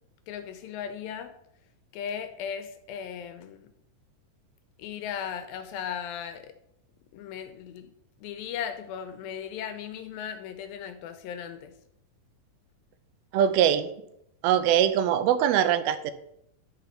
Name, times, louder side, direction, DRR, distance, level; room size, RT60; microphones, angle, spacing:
voice 1, 0.3-1.3 1.9-3.7 4.8-6.5 7.1-7.9 8.2-11.7, left 8 dB, 80° left, 8 dB, 2.4 m, -37 dB
voice 2, 13.3-13.9 14.4-16.1, right 9 dB, 85° right, 12 dB, 2.5 m, -22 dB
10.5 x 5.1 x 5.6 m, 0.76 s
omnidirectional pair, 4.4 m